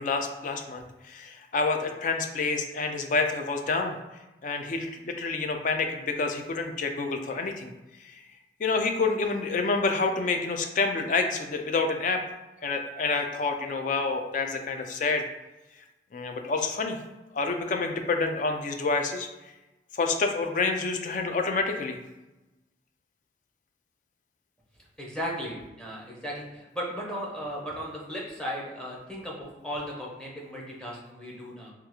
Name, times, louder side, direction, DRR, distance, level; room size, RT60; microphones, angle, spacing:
voice 1, 0.0-4.0 4.4-7.7 8.6-12.2 12.6-15.3 16.1-17.0 17.3-19.3 19.9-22.0, left 4 dB, 45° left, 4 dB, 0.4 m, -28 dB
voice 2, 25.0-31.7, equal, 5° left, -3 dB, 0.7 m, -36 dB
3.5 x 2.4 x 2.9 m, 1.0 s
head